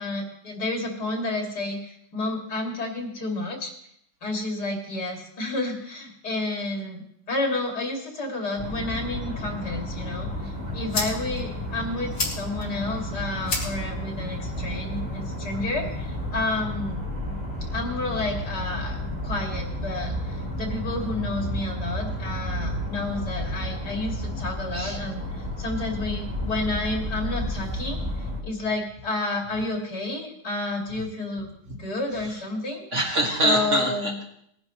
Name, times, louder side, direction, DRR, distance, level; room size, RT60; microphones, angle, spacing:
voice 1, 0.0-3.7 4.2-17.0 17.7-32.8 33.4-34.1, left 2 dB, 65° left, 0 dB, 3.1 m, -30 dB
sound 1, 8.6-28.4, equal, 15° right, 2.7 m, -32 dB
sound 2, 10.3-16.3, left 2 dB, 80° left, 3.1 m, -36 dB
voice 2, 32.9-34.2, right 1 dB, 40° right, -1 dB, 2.4 m, -25 dB
20.5 x 10.5 x 3.1 m, 0.71 s
omnidirectional pair, 1.9 m